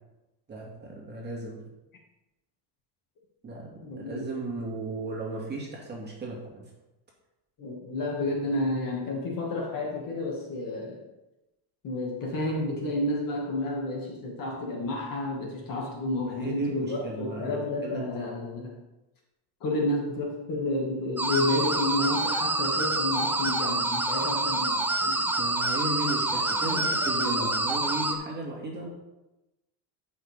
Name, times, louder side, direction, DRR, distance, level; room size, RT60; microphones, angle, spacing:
voice 1, 0.5-1.6 3.4-6.7 16.3-18.0 25.4-28.9, right 2 dB, 20° right, -3 dB, 2.3 m, -35 dB
voice 2, 3.8-4.2 7.6-11.0 11.8-18.8 19.6-25.3 26.7-26.8 27.1-27.5, left 2 dB, 45° left, -1 dB, 2.2 m, -30 dB
sound 1, 21.2-28.1, right 2 dB, 5° right, 0.3 m, -27 dB
13.5 x 5.8 x 3.6 m, 0.98 s
cardioid pair, 145°, 48 cm